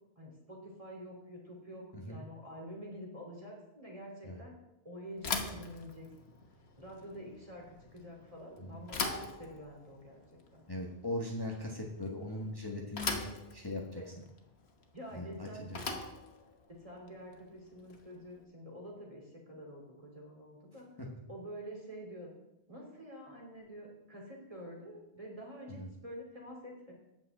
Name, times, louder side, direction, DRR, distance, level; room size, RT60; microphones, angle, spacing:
voice 1, 0.2-4.6 4.8-6.1 6.8-10.2 10.5-10.6 14.0-14.1 14.9-15.7 16.7-20.9 21.3-22.3 22.7-26.9, equal, 35° right, -2 dB, 2.9 m, -47 dB
Bicycle / Thump thud, 5.2-18.3, left 4 dB, 90° left, 1.5 m, -42 dB
voice 2, 10.7-14.0 15.1-15.8 21.0-21.1 25.7-25.9, left 1 dB, 25° left, -1 dB, 1.3 m, -40 dB
8.8 x 6.2 x 7.6 m, 0.87 s
omnidirectional pair, 1.0 m